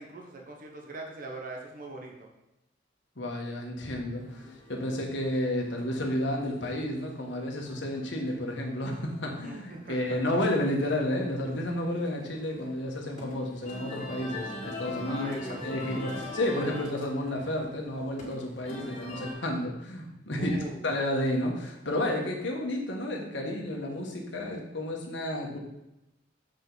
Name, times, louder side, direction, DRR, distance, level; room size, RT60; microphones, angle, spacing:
voice 1, 0.0-2.3 9.4-10.2 15.0-16.2 20.3-21.0, right 2 dB, 45° right, 0 dB, 1.1 m, -42 dB
voice 2, 3.2-20.6 20.8-25.6, left 1 dB, 65° left, 0 dB, 1.4 m, -31 dB
sound 1, 4.2-19.3, left 2 dB, 40° left, 2.2 m, -43 dB
7.3 x 5.1 x 4.0 m, 0.91 s
head